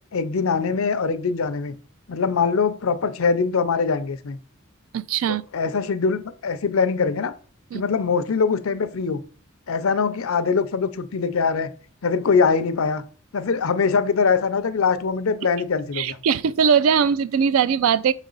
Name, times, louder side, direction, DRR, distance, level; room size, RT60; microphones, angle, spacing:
voice 1, 0.1-1.8 2.1-4.4 5.3-7.3 7.7-9.2 9.7-11.7 12.0-13.0 13.3-16.2, left 5 dB, 90° left, 0.6 m, -22 dB
voice 2, 4.9-5.4 7.7-7.8 15.9-18.1, right 7 dB, 85° right, 0.4 m, -20 dB
6.1 x 4.1 x 3.9 m
head